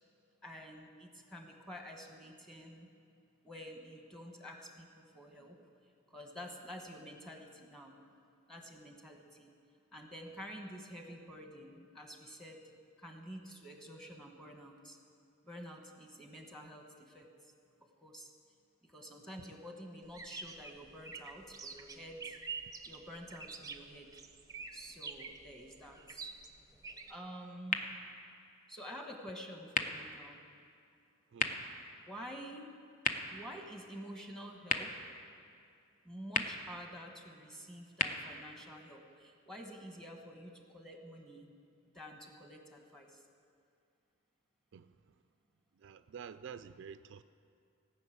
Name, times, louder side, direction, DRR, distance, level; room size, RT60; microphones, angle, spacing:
voice 1, 0.4-2.9 3.4-5.6 6.1-7.9 8.5-9.5 9.9-12.6 13.0-15.0 15.5-17.5 18.0-18.3 18.8-22.4 22.8-24.1 24.7-26.3 27.1-27.8 28.7-30.4 32.0-32.7 33.3-34.9 36.0-41.5 41.9-43.2, equal, ahead, 3 dB, 1.2 m, -49 dB
sound 1, 20.1-27.1, right 5 dB, 15° right, 0.6 m, -47 dB
sound 2, 27.6-39.6, left 4 dB, 35° left, 0.6 m, -41 dB
voice 2, 31.3-31.8 44.7-45.2 45.7-47.2, right 7 dB, 60° right, 11 dB, 0.3 m, -50 dB
17.0 x 6.1 x 8.4 m, 2.4 s
head